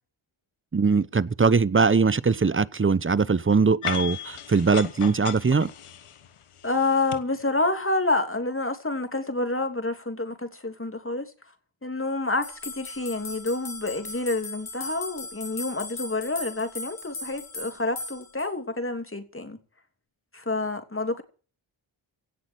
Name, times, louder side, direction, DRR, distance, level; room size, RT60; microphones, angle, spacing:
voice 1, 0.7-5.7, right 4 dB, 25° right, 0.8 m, -21 dB
sound 1, 3.8-7.2, left 9 dB, 90° left, 1.4 m, -36 dB
voice 2, 6.6-11.3 11.8-19.6 20.3-21.2, left 2 dB, 25° left, 3.1 m, -28 dB
sound 2, 12.4-18.5, left 3 dB, 70° left, 5.4 m, -38 dB
17.5 x 6.2 x 8.9 m
cardioid pair, 45°, 49 cm